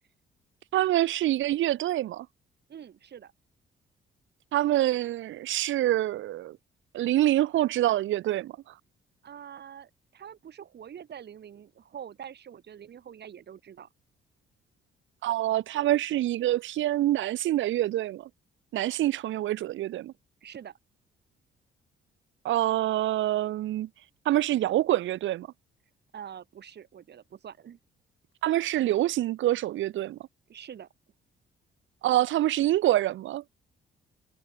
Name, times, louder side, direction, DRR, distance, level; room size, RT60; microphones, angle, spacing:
voice 1, 0.7-2.3 4.5-6.6 6.9-8.5 15.2-18.3 18.7-20.1 22.4-23.9 24.3-25.5 28.4-30.2 32.0-33.4, right 14 dB, 75° right, 0.8 m, -26 dB
voice 2, 2.7-3.3 9.2-13.9 20.4-20.8 26.1-27.8 30.5-30.9, right 9 dB, 55° right, 4.3 m, -45 dB
cardioid pair, 90°, 20 cm